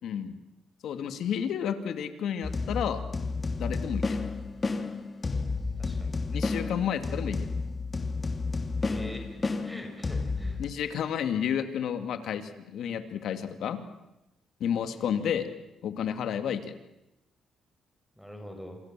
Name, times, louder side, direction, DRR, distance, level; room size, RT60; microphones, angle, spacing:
voice 1, 0.0-0.3 0.8-3.0 3.6-4.2 6.3-7.5 10.6-13.8 14.6-15.5 15.8-16.7, left 8 dB, 75° left, 8 dB, 2.6 m, -31 dB
sound 1, 2.4-10.7, left 3 dB, 30° left, 2.9 m, -31 dB
voice 2, 5.8-6.2 8.8-10.6 14.9-15.1 18.2-18.8, equal, 5° right, 5 dB, 6.3 m, -43 dB
27.0 x 27.0 x 7.7 m, 0.95 s
cardioid pair, 90°, 0 cm